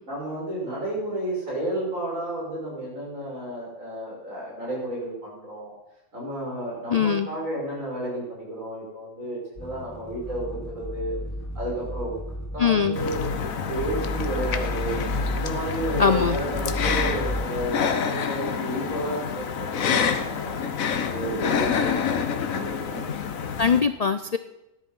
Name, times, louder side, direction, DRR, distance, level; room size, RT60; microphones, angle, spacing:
voice 1, 0.1-5.7 6.1-11.2 11.5-12.1 12.5-15.0 15.3-20.6 21.1-23.1, right 1 dB, 75° right, -4 dB, 6.2 m, -32 dB
voice 2, 6.9-7.3 12.6-13.0 16.0-16.4 23.6-24.4, left 6 dB, 60° left, 12 dB, 0.4 m, -21 dB
sound 1, 9.6-17.7, equal, 15° left, 0.8 m, -33 dB
sound 2, 13.0-23.8, left 7 dB, 90° left, 1.4 m, -28 dB
13.0 x 10.5 x 5.5 m, 0.92 s
omnidirectional pair, 1.4 m